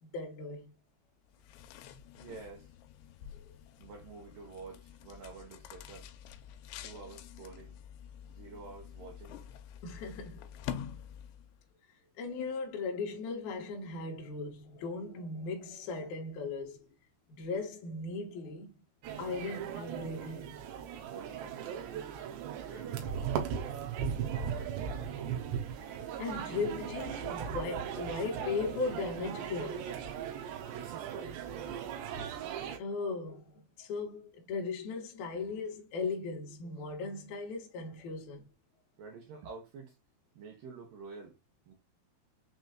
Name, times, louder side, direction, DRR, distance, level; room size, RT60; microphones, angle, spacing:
voice 1, 0.0-0.8 3.3-3.5 9.8-10.7 12.2-16.9 17.3-18.8 19.2-20.6 26.2-30.0 32.8-38.5, left 4 dB, 65° left, 1.9 m, -38 dB
sound 1, 1.3-11.6, left 9 dB, 85° left, 2.6 m, -47 dB
voice 2, 2.2-2.7 3.8-6.1 6.8-7.8 8.3-9.5 21.0-22.1 22.6-24.0 24.3-25.4 30.8-31.4 39.0-40.0 40.3-41.4 41.7-41.8, right 4 dB, 70° right, 2.5 m, -49 dB
sound 2, 19.0-32.8, right 8 dB, 90° right, 3.0 m, -38 dB
6.4 x 3.0 x 2.2 m
omnidirectional pair, 4.7 m